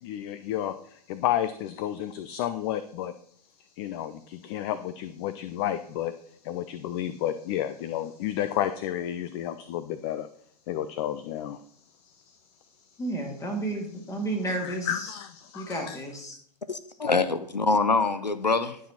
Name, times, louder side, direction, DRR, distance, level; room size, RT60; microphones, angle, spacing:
voice 1, 0.0-3.1 3.8-6.1 6.4-10.3 10.7-11.6 12.0-12.4 14.6-16.0, left 11 dB, 40° left, 0.6 m, -31 dB
voice 2, 13.0-15.1 15.5-16.4, right 2 dB, 15° left, 2.4 m, -32 dB
voice 3, 16.7-18.8, left 3 dB, 90° left, 0.7 m, -25 dB
11.5 x 4.9 x 5.7 m
figure-of-eight pair, 105°, 21 cm